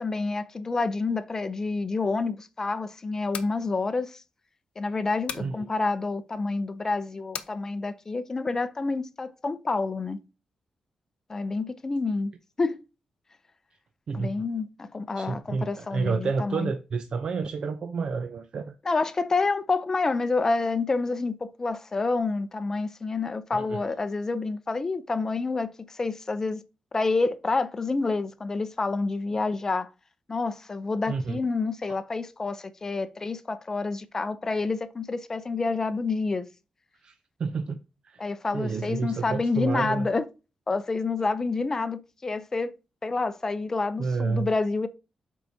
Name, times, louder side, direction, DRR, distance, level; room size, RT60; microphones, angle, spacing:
voice 1, 0.0-4.2 4.8-10.2 11.3-12.8 14.1-16.7 18.9-26.6 26.9-29.9 30.3-36.5 38.2-40.2 40.7-42.7 43.0-44.9, left 3 dB, 25° left, 0.5 m, -28 dB
sound 1, 3.1-3.6 5.3-5.5 7.3-7.6, left 7 dB, 75° left, 0.8 m, -36 dB
voice 2, 5.4-5.7 14.1-14.3 15.2-18.7 23.5-23.9 31.1-31.4 37.0-37.1 37.4-37.8 38.0-38.2 38.5-40.1 44.0-44.5, right 4 dB, 50° right, 0.5 m, -30 dB
12.0 x 4.6 x 2.7 m
wide cardioid pair, 155°, 2 cm